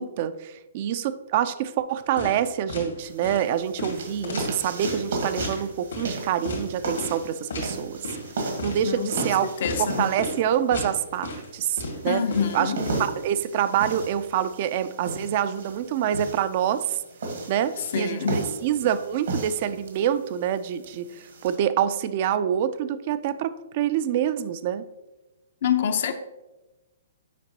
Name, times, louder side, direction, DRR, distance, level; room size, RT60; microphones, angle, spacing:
voice 1, 0.0-8.0 8.6-9.5 9.8-12.2 12.5-12.7 13.0-17.0 17.5-24.8, right 10 dB, 45° right, 0.4 m, -26 dB
sound 1, 2.2-2.4 2.7-2.9 3.2-3.4 3.8-5.0 5.4-5.6 5.9-6.1 6.4-6.6 7.0-7.2 7.5-7.7 8.0-8.3 8.6-8.8 9.1-9.3 9.6-9.9 10.2-10.4 10.7-10.9 11.2-11.4 11.8-13.0, left 2 dB, 75° left, 1.9 m, -32 dB
sound 2, 3.0-21.6, right 2 dB, 70° right, 1.4 m, -35 dB
voice 2, 8.8-10.1 12.0-12.8 17.9-18.5 25.6-26.1, left 7 dB, 60° left, 0.7 m, -26 dB
8.1 x 5.1 x 2.9 m
hypercardioid pair, 130°, 0 cm